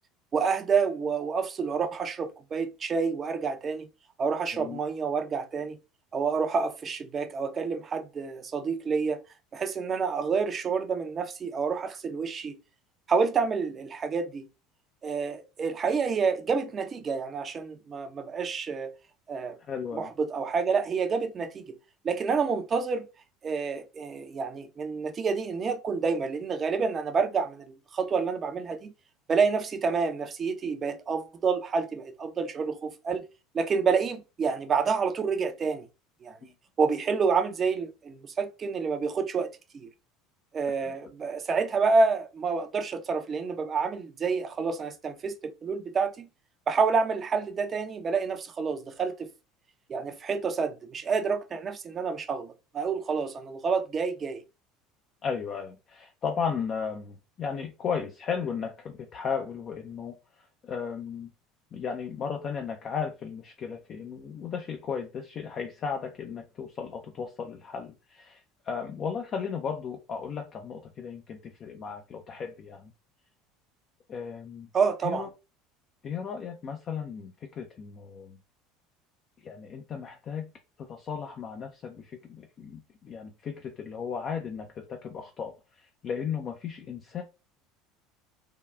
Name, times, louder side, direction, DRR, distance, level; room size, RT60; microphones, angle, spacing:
voice 1, 0.3-3.9 4.2-5.8 6.1-9.2 9.5-12.6 13.1-14.5 15.0-18.9 19.3-19.6 19.9-21.8 22.0-23.1 23.4-28.9 29.3-33.3 33.5-35.9 36.2-36.4 36.8-39.5 39.7-39.9 40.5-45.4 45.6-46.3 46.7-49.3 49.9-54.4 74.7-75.3, right 5 dB, 30° right, 0.5 m, -28 dB
voice 2, 19.7-20.1 36.4-36.5 40.8-40.9 55.2-61.3 61.7-72.9 74.1-74.7 75.0-75.3 76.0-78.4 79.4-80.5 80.8-87.2, left 6 dB, 40° left, 0.4 m, -35 dB
3.4 x 2.3 x 2.3 m
figure-of-eight pair, 65°, 0 cm